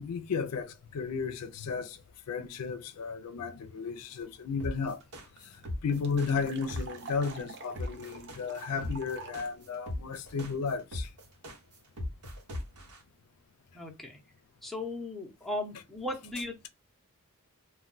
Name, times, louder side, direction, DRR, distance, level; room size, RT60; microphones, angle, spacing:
voice 1, 0.0-2.0 2.3-5.0 5.4-5.5 5.8-11.1, left 5 dB, 85° left, 0.4 m, -34 dB
sound 1, 4.6-13.0, left 1 dB, 90° right, 1.0 m, -38 dB
sound 2, 4.7-4.8 5.0-5.1 5.4-9.5, right 4 dB, 50° right, 0.5 m, -47 dB
voice 2, 13.7-14.2 14.6-16.7, left 1 dB, ahead, 0.6 m, -37 dB
2.2 x 2.2 x 3.8 m
head